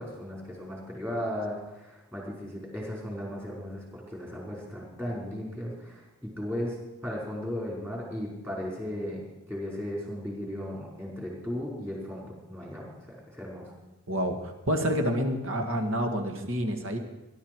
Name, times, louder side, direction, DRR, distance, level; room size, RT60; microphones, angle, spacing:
voice 1, 0.0-9.2 9.5-13.7, equal, 10° right, -4 dB, 4.8 m, -36 dB
voice 2, 14.1-17.0, equal, 60° right, 5 dB, 1.8 m, -28 dB
20.5 x 12.0 x 4.7 m, 1.0 s
head